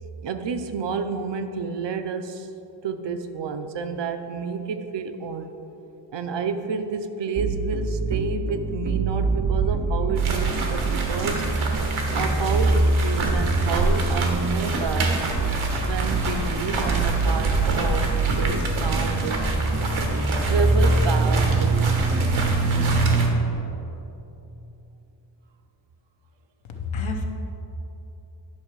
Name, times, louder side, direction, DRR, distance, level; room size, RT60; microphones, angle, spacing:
voice 1, 0.2-2.5 2.8-5.5 6.1-11.4 12.1-15.2 15.6-19.5 20.5-22.2, right 5 dB, 65° right, 8 dB, 0.6 m, -30 dB
sound 1, 7.4-23.3, right 3 dB, 25° right, 0.3 m, -25 dB
sound 2, 10.2-23.3, right 3 dB, 90° right, 1.3 m, -26 dB
voice 2, 26.6-27.3, left 3 dB, 80° left, 2 dB, 1.1 m, -29 dB
10.5 x 5.7 x 4.6 m, 3.0 s
wide cardioid pair, 165°, 47 cm